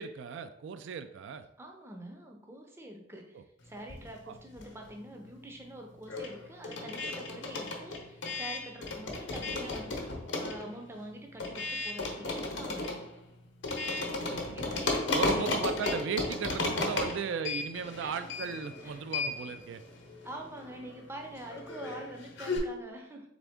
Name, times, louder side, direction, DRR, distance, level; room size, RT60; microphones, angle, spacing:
voice 1, 0.0-1.5 3.3-3.4 4.3-4.4 14.1-14.8 15.1-19.8, right 6 dB, 80° right, 10 dB, 0.3 m, -36 dB
voice 2, 1.6-13.0 14.5-15.7 17.0-17.2 18.0-18.3 18.8-19.1 20.2-23.3, right 1 dB, 15° right, 2 dB, 0.5 m, -46 dB
sound 1, 3.8-5.0 5.3-22.6, left 3 dB, 75° left, 0.8 m, -35 dB
3.8 x 3.4 x 3.5 m, 0.76 s
head